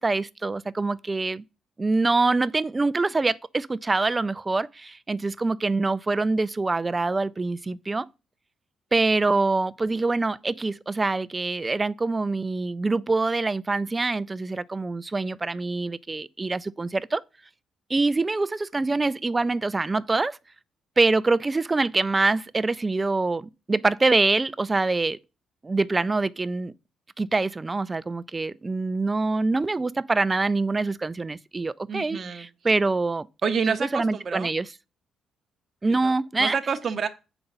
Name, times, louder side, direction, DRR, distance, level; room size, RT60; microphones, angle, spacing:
voice 1, 0.0-1.4 1.8-8.1 8.9-17.2 17.9-20.4 21.0-25.2 25.6-26.7 27.2-33.3 33.9-34.7 35.8-36.6, right 3 dB, 25° right, 0.3 m, -25 dB
voice 2, 31.9-32.5 33.4-34.5 35.9-37.1, right 6 dB, 45° right, 0.7 m, -28 dB
6.8 x 5.0 x 5.4 m
cardioid pair, 90°, 0 cm